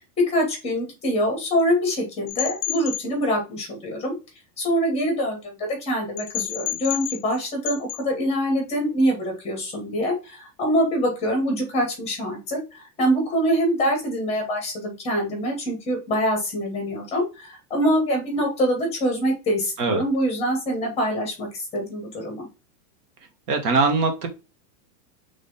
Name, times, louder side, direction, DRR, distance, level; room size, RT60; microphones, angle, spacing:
voice 1, 0.2-4.1 4.6-22.5, equal, 15° left, 2 dB, 1.4 m, -24 dB
sound 1, 2.3-3.1 6.2-7.4 7.6-8.0, left 16 dB, 40° left, 1.0 m, -30 dB
voice 2, 23.5-24.3, right 4 dB, 70° right, 5 dB, 1.6 m, -21 dB
4.1 x 3.6 x 3.4 m, 0.29 s
supercardioid pair, 180°, 48 cm